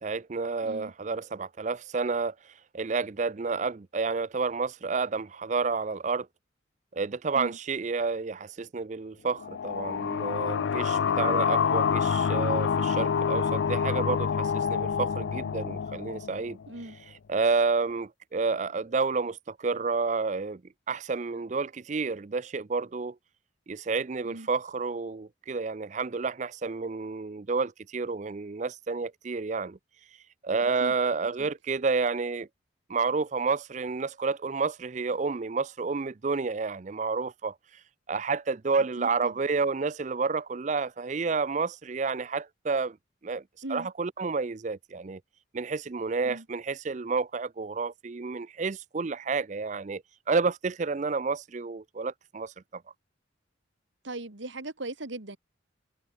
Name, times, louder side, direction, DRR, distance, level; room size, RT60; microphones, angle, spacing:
voice 1, 0.0-2.3 2.7-6.3 6.9-16.6 17.3-20.6 20.9-23.2 23.7-29.8 30.4-32.5 32.9-37.5 38.1-43.0 43.2-43.4 43.7-45.2 45.5-52.8, right 4 dB, 40° right, 0.4 m, -30 dB
voice 2, 0.6-0.9 7.3-7.6 16.7-17.0 24.2-24.5 30.6-30.9 31.4-31.5 38.7-39.4 43.6-43.9 46.2-46.4 54.0-55.4, right 2 dB, 75° right, 2.2 m, -39 dB
sound 1, 9.4-16.8, left 6 dB, 70° left, 0.4 m, -27 dB
head